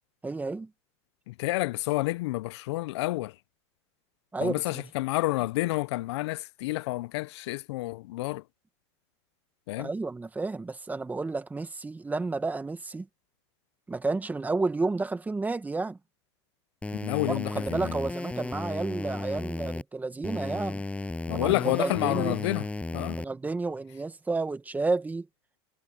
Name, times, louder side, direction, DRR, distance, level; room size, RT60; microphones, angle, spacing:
voice 1, 0.2-0.7 4.3-4.9 9.8-13.1 13.9-16.0 17.3-20.8 21.3-22.4 23.1-25.3, right 3 dB, 10° right, 1.8 m, -31 dB
voice 2, 1.3-3.3 4.4-8.4 9.7-9.9 17.0-17.8 21.3-22.7 22.9-23.2, left 19 dB, 75° left, 0.5 m, -29 dB
sound 1, 16.8-19.8 20.2-23.2, left 2 dB, 10° left, 6.8 m, -34 dB
supercardioid pair, 120°, 14 cm